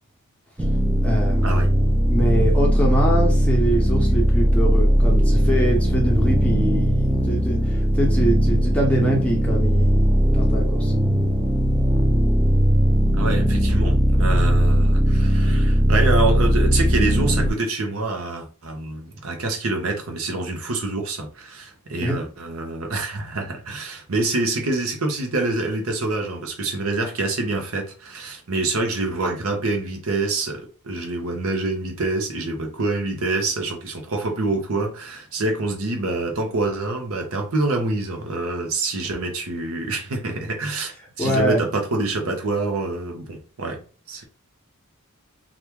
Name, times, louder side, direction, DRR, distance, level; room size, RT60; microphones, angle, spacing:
sound 1, 0.6-17.5, equal, 10° right, 0.4 m, -18 dB
voice 1, 1.0-1.6 2.1-9.9 10.3-10.9 22.0-22.2 41.2-41.6, equal, 5° left, 0.9 m, -24 dB
voice 2, 13.2-43.8 44.1-44.2, right 2 dB, 65° right, 0.8 m, -26 dB
2.9 x 2.4 x 3.4 m
head